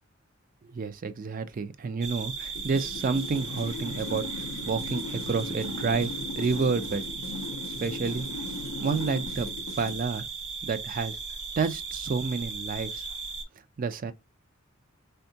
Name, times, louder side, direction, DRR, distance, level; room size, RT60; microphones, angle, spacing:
voice 1, 0.6-4.2 4.6-7.0 7.8-8.3 8.8-9.5 9.8-10.2 10.6-11.2 11.6-13.0 13.8-14.1, right 4 dB, 40° right, 0.4 m, -29 dB
sound 1, 2.0-13.4, right 4 dB, 60° right, 0.8 m, -37 dB
sound 2, 2.6-10.1, left 3 dB, 85° left, 0.5 m, -38 dB
3.6 x 2.2 x 2.6 m
head